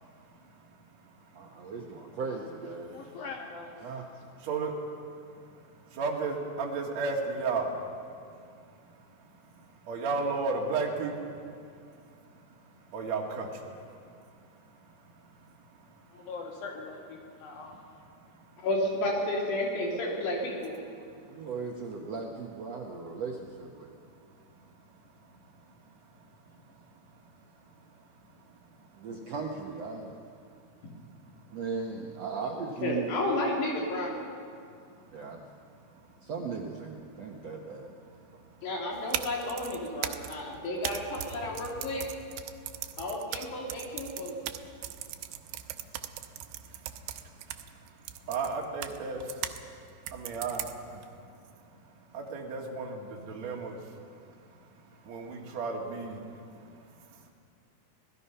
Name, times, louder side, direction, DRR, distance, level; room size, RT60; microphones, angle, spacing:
voice 1, 0.0-1.7 2.9-3.2 3.8-16.3 17.2-18.7 21.0-21.5 23.8-23.9 24.4-29.1 30.5-30.9 31.2-31.6 34.5-36.1 37.1-37.2 37.8-38.7 40.5-40.6 41.2-41.7 42.6-43.0 44.8-57.3, right 4 dB, 50° right, -1 dB, 2.9 m, -39 dB
voice 2, 1.4-3.1 3.8-4.1 21.3-23.9 29.0-30.2 31.5-33.1 35.1-35.4 36.2-37.9, right 4 dB, 65° right, 1 dB, 1.6 m, -37 dB
voice 3, 2.9-3.7 16.1-17.8, left 4 dB, 65° left, 1 dB, 3.2 m, -42 dB
voice 4, 18.6-20.7 32.8-34.1 38.6-42.1 43.0-44.4, left 1 dB, 90° left, -1 dB, 5.2 m, -31 dB
sound 1, 38.9-49.6 50.1-51.0, right 12 dB, 85° right, 2.7 m, -39 dB
25.5 x 18.5 x 5.6 m, 2.3 s
omnidirectional pair, 4.6 m